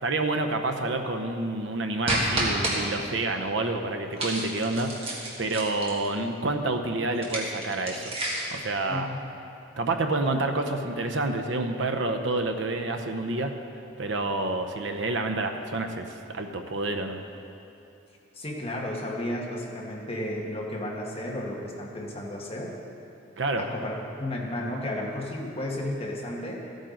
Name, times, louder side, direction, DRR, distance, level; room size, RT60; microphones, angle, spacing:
voice 1, 0.0-8.1 8.5-9.1 9.8-13.5 14.0-17.2 23.4-23.6, right 2 dB, 65° right, 5 dB, 0.8 m, -28 dB
sound 1, 2.1-2.8 4.2-6.1 7.1-8.6, right 1 dB, 30° right, 1.8 m, -29 dB
voice 2, 8.9-9.2 18.3-22.7 23.6-26.6, left 1 dB, 30° left, -3 dB, 1.5 m, -33 dB
14.0 x 9.0 x 3.9 m, 2.7 s
head